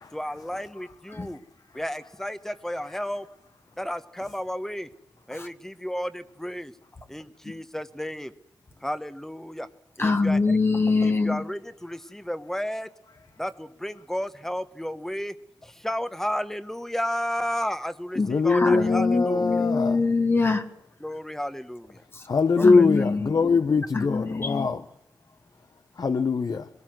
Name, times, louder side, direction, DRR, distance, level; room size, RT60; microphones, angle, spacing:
voice 1, 0.1-1.4 1.7-3.3 3.8-4.9 5.3-6.7 7.1-8.3 8.8-9.7 10.0-10.4 11.0-12.9 13.4-15.3 15.6-19.5 21.0-22.0 22.6-23.0, equal, 5° left, 13 dB, 1.3 m, -32 dB
voice 2, 10.0-11.4 18.1-20.7 22.1-22.2 22.6-23.3 23.9-24.7, left 3 dB, 35° left, 7 dB, 1.6 m, -24 dB
voice 3, 18.3-20.0 22.3-24.8 26.0-26.7, left 4 dB, 60° left, 10 dB, 1.1 m, -22 dB
23.0 x 17.5 x 7.9 m, 0.78 s
wide cardioid pair, 110°, 7 cm